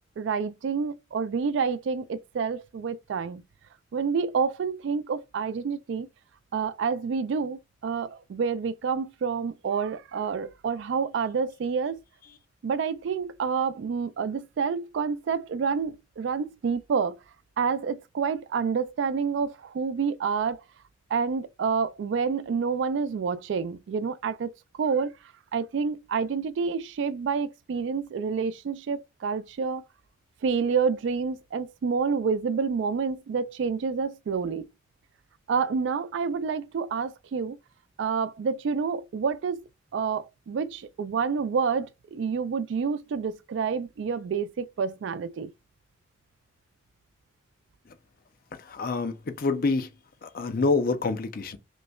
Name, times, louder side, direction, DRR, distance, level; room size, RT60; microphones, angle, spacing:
voice 1, 0.2-3.4 3.9-6.1 6.5-12.0 12.6-17.2 17.6-20.6 21.1-24.5 24.8-25.1 25.5-29.8 30.4-34.7 35.5-37.6 38.0-39.7 39.9-45.5, right 5 dB, 65° right, 0.3 m, -28 dB
voice 2, 48.5-49.9 50.2-51.6, left 3 dB, 45° left, 0.5 m, -27 dB
5.2 x 2.1 x 2.3 m
head